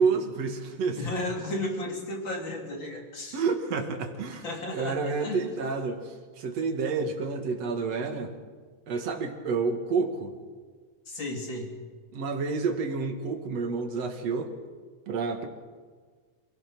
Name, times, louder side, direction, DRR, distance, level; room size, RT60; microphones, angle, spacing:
voice 1, 0.0-1.0 3.3-4.5 4.7-8.3 8.9-10.3 12.1-14.5 15.1-15.5, right 4 dB, 60° right, 5 dB, 2.9 m, -29 dB
voice 2, 0.9-3.4 4.4-5.4 11.1-11.7, left 1 dB, 40° left, 1 dB, 3.7 m, -34 dB
27.0 x 17.5 x 6.1 m, 1.5 s
omnidirectional pair, 3.5 m